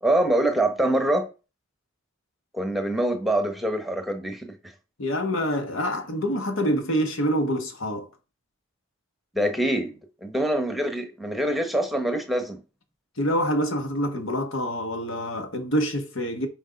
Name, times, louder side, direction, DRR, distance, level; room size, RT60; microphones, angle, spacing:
voice 1, 0.0-1.3 2.5-4.6 9.3-9.9 10.2-12.6, right 1 dB, ahead, 1.1 m, -24 dB
voice 2, 5.0-8.1 13.2-16.5, equal, 80° left, 1.4 m, -26 dB
6.4 x 4.7 x 5.2 m
head